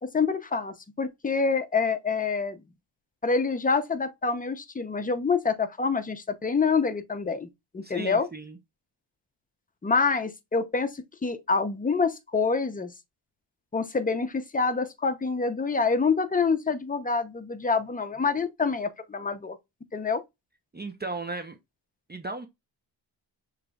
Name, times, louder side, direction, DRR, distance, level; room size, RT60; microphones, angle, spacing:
voice 1, 0.0-2.6 3.2-7.5 7.7-8.3 9.8-12.9 13.7-19.6 19.9-20.2, left 4 dB, 20° left, 0.7 m, -26 dB
voice 2, 7.8-8.6 20.7-21.6 22.1-22.5, right 3 dB, 20° right, 0.7 m, -36 dB
6.6 x 3.2 x 2.3 m
wide cardioid pair, 110°, 46 cm